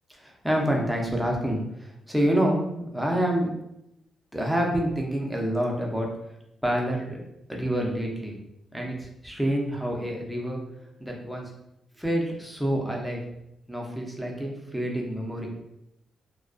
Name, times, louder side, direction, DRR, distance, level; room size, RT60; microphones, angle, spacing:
voice 1, 0.1-3.5 4.3-6.1 6.6-7.2 7.5-8.3 8.7-10.6 11.0-11.5 12.0-13.2 13.7-15.5, equal, ahead, -1 dB, 0.4 m, -27 dB
2.4 x 2.2 x 2.3 m, 0.83 s
wide cardioid pair, 145°, 0 cm